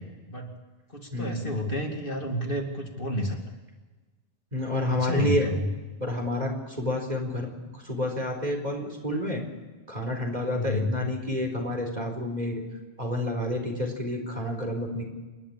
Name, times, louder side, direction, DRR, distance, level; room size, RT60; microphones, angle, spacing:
voice 1, 0.9-3.4 5.0-5.7 10.5-11.0, left 1 dB, 50° left, 2 dB, 2.7 m, -30 dB
voice 2, 4.5-5.5 6.0-7.5 7.7-9.4 9.9-12.6 13.0-15.0, left 1 dB, 40° right, 1 dB, 4.4 m, -29 dB
27.5 x 11.5 x 8.6 m, 1.3 s
omnidirectional pair, 1.2 m